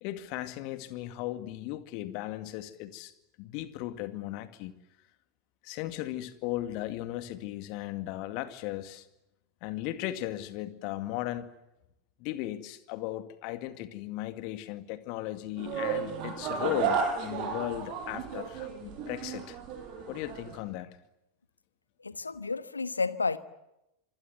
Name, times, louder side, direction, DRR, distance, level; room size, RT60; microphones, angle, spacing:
voice 1, 0.0-3.1 3.4-4.7 5.6-9.1 9.6-11.5 12.2-19.6 20.1-21.0, left 15 dB, 45° left, 2.2 m, -36 dB
sound 1, 15.6-20.6, right 6 dB, 40° right, 6.7 m, -33 dB
voice 2, 22.0-23.4, left 4 dB, 80° left, 1.3 m, -31 dB
26.5 x 21.5 x 9.5 m
figure-of-eight pair, 90°, 0 cm